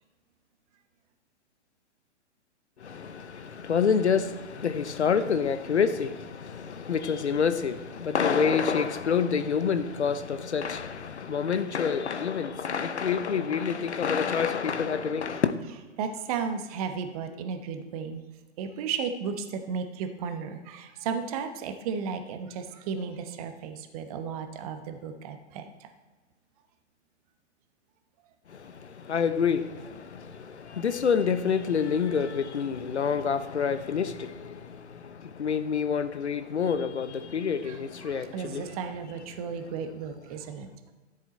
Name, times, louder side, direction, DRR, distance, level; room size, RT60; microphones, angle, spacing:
voice 1, 2.8-15.5 28.5-38.7, left 6 dB, 65° left, 0.9 m, -27 dB
voice 2, 16.0-18.2 18.6-25.9 37.6-40.7, right 6 dB, 30° right, 1.0 m, -34 dB
13.5 x 7.7 x 4.2 m
figure-of-eight pair, 120°, 36 cm